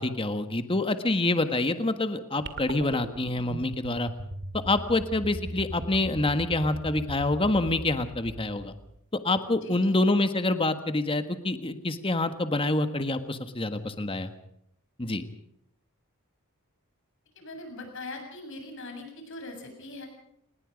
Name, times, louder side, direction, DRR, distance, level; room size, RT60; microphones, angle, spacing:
voice 1, 0.0-4.1 4.6-8.7 9.2-14.3 15.0-15.2, left 2 dB, 25° left, 9 dB, 1.5 m, -26 dB
sound 1, 2.4-9.0, right 1 dB, 50° right, 2.2 m, -39 dB
voice 2, 9.6-9.9 17.4-20.1, left 2 dB, 60° left, 4 dB, 7.2 m, -41 dB
28.5 x 20.5 x 5.2 m, 0.74 s
head